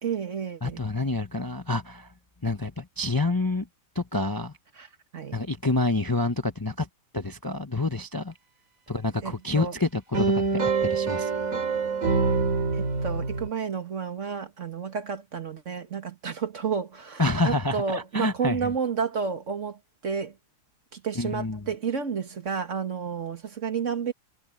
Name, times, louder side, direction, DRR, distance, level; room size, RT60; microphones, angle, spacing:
voice 1, 0.0-0.8 4.8-4.9 5.1-5.4 9.2-9.8 12.7-20.4 20.9-24.1, right 6 dB, 60° right, 2.1 m, -31 dB
voice 2, 0.6-2.1 2.4-3.7 3.9-4.5 5.3-6.9 7.1-8.3 8.9-11.3 17.2-18.7 21.2-21.6, left 2 dB, 20° left, 0.7 m, -28 dB
sound 1, 10.1-13.5, right 4 dB, 75° right, 3.1 m, -25 dB
omnidirectional pair, 1.5 m